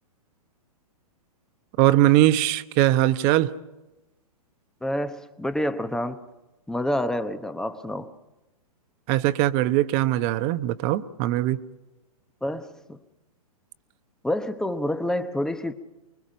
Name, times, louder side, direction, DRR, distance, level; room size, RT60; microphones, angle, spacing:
voice 1, 1.8-3.5 9.1-11.6, right 15 dB, 35° right, 1.0 m, -21 dB
voice 2, 4.8-6.2 6.7-8.1 12.4-13.0 14.2-15.7, left 1 dB, 5° left, 1.0 m, -28 dB
25.0 x 22.0 x 5.2 m
hypercardioid pair, 125°, 20 cm